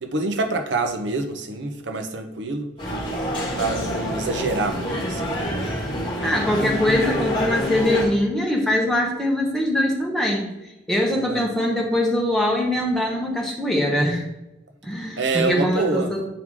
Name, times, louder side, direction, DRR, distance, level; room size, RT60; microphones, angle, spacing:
voice 1, 0.0-2.7 3.6-5.3 11.2-11.4 15.2-16.1, right 3 dB, 65° right, 6 dB, 0.6 m, -26 dB
sound 1, 2.8-8.1, equal, 25° left, 1.8 m, -27 dB
voice 2, 6.2-10.5 10.9-14.2 14.8-16.3, left 1 dB, ahead, -1 dB, 1.0 m, -22 dB
7.6 x 4.7 x 3.7 m, 0.97 s
head